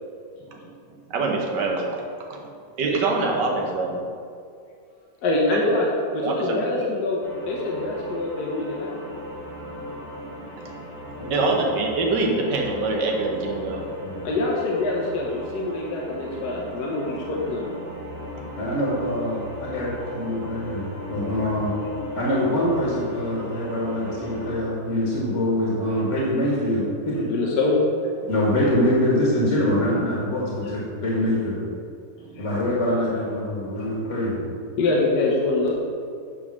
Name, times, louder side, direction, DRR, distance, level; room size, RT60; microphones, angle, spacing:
voice 1, 1.1-2.5 2.8-4.1 5.5-5.8 6.1-6.9 10.0-10.8 11.1-14.0 18.3-18.7 32.2-32.4, right 3 dB, 75° right, 0 dB, 1.6 m, -26 dB
voice 2, 5.2-7.2 7.5-9.0 14.2-17.7 27.3-27.9 32.4-32.5 34.8-35.7, left 2 dB, 65° left, -3 dB, 1.5 m, -24 dB
sound 1, 7.2-24.5, equal, 25° right, 2.1 m, -37 dB
voice 3, 11.2-11.6 14.0-14.2 18.6-21.7 22.1-27.2 28.3-31.6 32.4-34.4, left 1 dB, 45° left, -5 dB, 1.8 m, -24 dB
9.3 x 3.7 x 6.0 m, 2.3 s
omnidirectional pair, 1.9 m